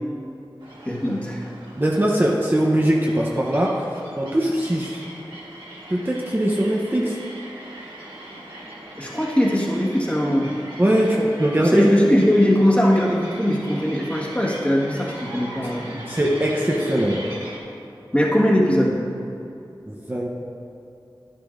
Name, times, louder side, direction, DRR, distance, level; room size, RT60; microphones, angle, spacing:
sound 1, 0.6-17.6, right 1 dB, 75° right, 1.8 m, -40 dB
voice 1, 0.9-1.5 9.0-10.5 11.1-11.2 11.6-16.0 18.1-19.0, equal, 15° left, -4 dB, 1.6 m, -20 dB
voice 2, 1.8-5.0 5.9-7.2 10.8-11.9 15.6-15.7 16.1-17.3 19.9-20.4, right 1 dB, 25° right, -2 dB, 0.8 m, -21 dB
10.5 x 10.5 x 2.6 m, 2.8 s
wide cardioid pair, 45°, 9 cm